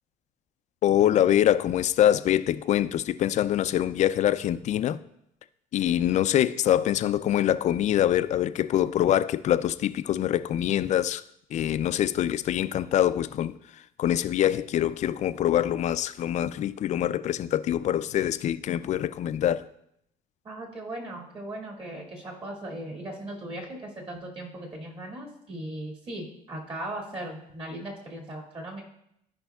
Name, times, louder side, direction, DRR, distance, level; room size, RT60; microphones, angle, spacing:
voice 1, 0.8-5.0 5.7-11.2 11.5-19.7, left 11 dB, 50° left, 13 dB, 0.4 m, -24 dB
voice 2, 20.4-28.8, right 1 dB, 35° right, 0 dB, 2.2 m, -38 dB
14.0 x 5.2 x 2.3 m, 0.75 s
cardioid pair, 105°, 15 cm